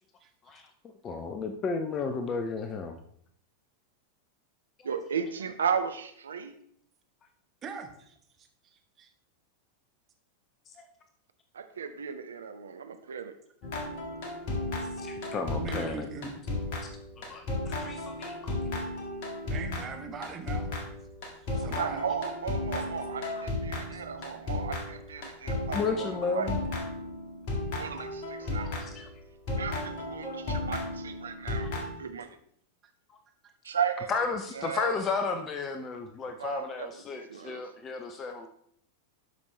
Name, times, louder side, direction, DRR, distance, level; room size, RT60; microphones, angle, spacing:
voice 1, 0.2-0.5 7.6-8.1 8.6-9.1 15.6-16.4 19.4-20.7 21.3-22.0, right 5 dB, 25° right, 4 dB, 1.2 m, -41 dB
voice 2, 1.0-3.0 10.7-10.9 15.0-16.1 17.2-18.6 23.4-23.5 23.9-24.0 25.7-26.6 28.4-29.1 33.1-33.2 34.1-38.5, left 4 dB, 25° left, 7 dB, 0.6 m, -33 dB
voice 3, 4.8-6.5 11.5-13.3 21.6-26.1 26.3-26.5 27.7-28.8 29.6-31.7 32.0-32.4 33.6-34.1 34.6-34.9 36.4-37.6, right 7 dB, 70° right, 8 dB, 0.7 m, -35 dB
sound 1, 13.6-29.1 29.5-31.9, left 2 dB, 45° left, 1.9 m, -34 dB
12.0 x 5.2 x 3.2 m, 0.67 s
figure-of-eight pair, 90°, 0 cm